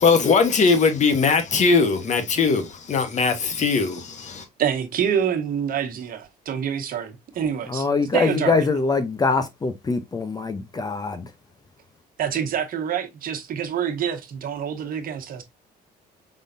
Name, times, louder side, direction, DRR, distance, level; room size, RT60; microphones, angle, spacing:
voice 1, 0.0-4.4, left 4 dB, 45° left, 1.1 m, -20 dB
voice 2, 4.6-7.8 8.1-8.5 12.2-15.4, right 8 dB, 55° right, 1.2 m, -26 dB
voice 3, 7.7-11.3, left 4 dB, 25° left, 0.6 m, -23 dB
5.3 x 3.7 x 2.6 m
cardioid pair, 110°, 17 cm